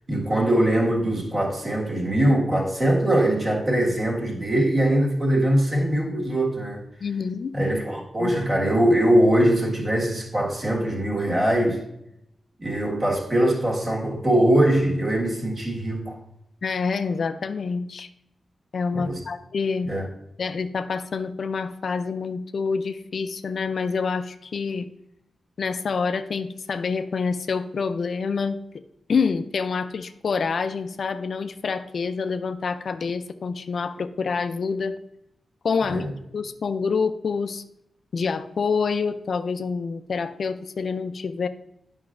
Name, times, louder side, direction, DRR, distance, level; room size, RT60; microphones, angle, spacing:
voice 1, 0.1-6.8 7.5-11.8 12.6-16.2 18.9-19.2 19.8-20.0 35.8-36.1, right 1 dB, 30° right, 1.6 m, -22 dB
voice 2, 7.0-7.5 8.2-8.3 16.6-18.1 18.7-19.9 20.4-24.9 25.6-28.6 29.1-34.9 35.6-36.1 36.3-37.6 38.1-41.5, left 5 dB, 60° left, 0.4 m, -27 dB
9.6 x 5.6 x 2.5 m
wide cardioid pair, 130°, 0 cm